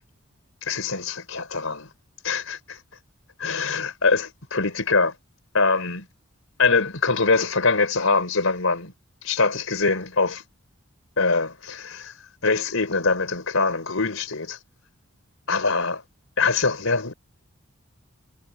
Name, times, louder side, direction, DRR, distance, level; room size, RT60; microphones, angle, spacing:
voice 1, 0.6-1.9 2.2-2.8 3.4-5.1 5.5-6.1 6.6-8.9 9.2-10.4 11.2-12.1 12.4-14.6 15.5-16.0 16.4-17.1, left 4 dB, 80° left, 3.9 m, -23 dB
head